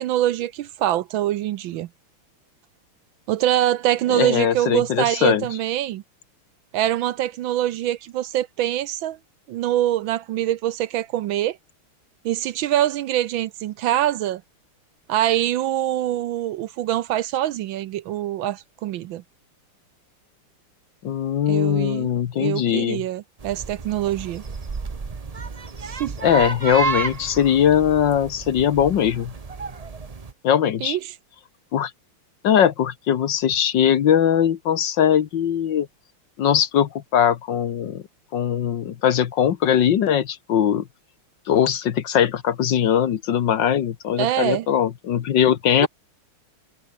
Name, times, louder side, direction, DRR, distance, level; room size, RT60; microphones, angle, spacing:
voice 1, 0.0-1.9 3.3-6.0 6.7-9.2 9.5-11.6 12.2-14.4 15.1-19.2 21.5-22.1 22.4-24.4 25.8-26.2 30.8-31.0 44.2-44.7 45.8-45.9, right 13 dB, 70° right, 1.3 m, -24 dB
voice 2, 4.1-5.5 21.0-23.0 26.2-29.3 30.4-31.0 31.7-31.9 32.4-35.9 36.4-38.0 38.3-40.9 41.5-45.9, left 9 dB, 60° left, 1.6 m, -20 dB
sound 1, 23.4-30.3, right 4 dB, 40° right, 0.5 m, -31 dB
omnidirectional pair, 2.4 m